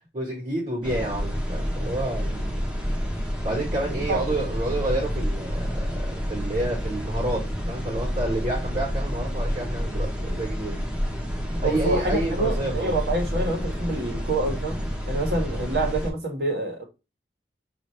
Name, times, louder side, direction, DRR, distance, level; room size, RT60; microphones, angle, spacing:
voice 1, 0.1-2.7 3.4-10.8 11.6-12.9, right 1 dB, 40° right, 1.3 m, -29 dB
sound 1, 0.8-16.1, equal, 5° right, 0.7 m, -29 dB
voice 2, 4.1-4.4 11.6-14.8 15.1-16.8, right 2 dB, 55° right, 1.3 m, -27 dB
5.5 x 2.7 x 3.1 m
head